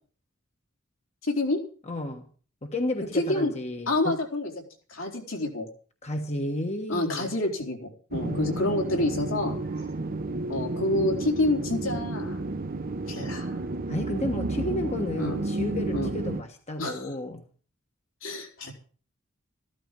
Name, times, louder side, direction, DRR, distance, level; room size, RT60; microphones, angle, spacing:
voice 1, 1.2-1.6 3.1-3.5 3.9-4.5 4.9-5.7 6.9-9.6 10.5-12.4 13.1-13.6 15.2-15.4 15.9-16.1 16.8-17.1 18.2-18.7, left 2 dB, 75° left, 4.1 m, -28 dB
voice 2, 1.9-2.2 2.6-4.2 6.0-7.3 8.2-8.9 13.9-17.4, left 1 dB, 35° left, 1.4 m, -32 dB
sound 1, 8.1-16.4, right 2 dB, 45° right, 0.9 m, -31 dB
14.5 x 12.5 x 5.3 m
head